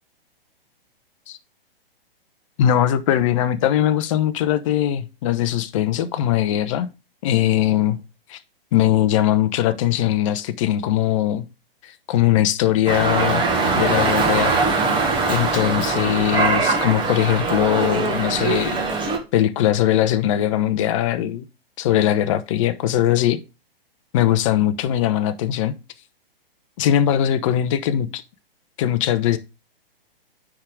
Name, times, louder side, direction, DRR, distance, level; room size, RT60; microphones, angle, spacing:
voice 1, 2.6-6.9 7.2-8.0 8.3-8.4 8.7-11.5 11.8-13.4 13.8-14.5 15.3-18.8 19.3-21.4 21.8-23.4 24.1-25.7 26.8-28.2 28.8-29.4, left 12 dB, 35° left, 0.7 m, -20 dB
Dog, 12.9-19.2, right 4 dB, 15° right, 1.2 m, -21 dB
9.9 x 3.7 x 4.7 m
figure-of-eight pair, 120°, 30 cm